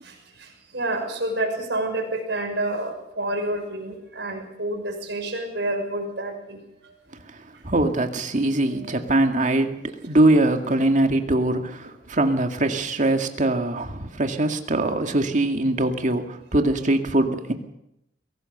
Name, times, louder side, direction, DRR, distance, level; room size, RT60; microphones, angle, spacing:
voice 1, 0.0-6.9 8.7-9.0, right 1 dB, 65° right, 3 dB, 6.4 m, -29 dB
voice 2, 7.6-17.5, right 2 dB, 45° right, 5 dB, 2.1 m, -22 dB
22.5 x 17.5 x 6.8 m, 0.82 s
head